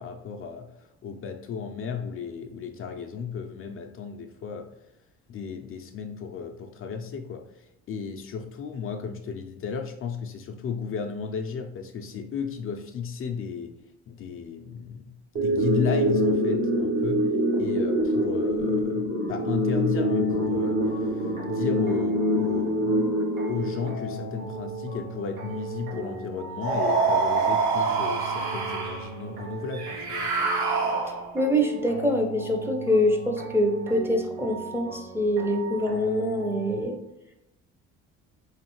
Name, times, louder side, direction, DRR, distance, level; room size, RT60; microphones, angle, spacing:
voice 1, 0.0-4.7 5.3-13.7 14.1-17.3 17.6-23.1 23.5-30.3, left 6 dB, 45° left, 5 dB, 0.5 m, -34 dB
sound 1, 15.4-24.4, equal, 50° right, 0.9 m, -25 dB
sound 2, 19.9-36.8, right 4 dB, 85° right, 1.0 m, -38 dB
sound 3, 26.6-29.1 29.7-31.4, right 4 dB, 70° right, 1.2 m, -25 dB
voice 2, 31.3-37.0, equal, 10° right, 3 dB, 0.6 m, -25 dB
3.6 x 3.2 x 3.0 m, 0.87 s
supercardioid pair, 85°, 30 cm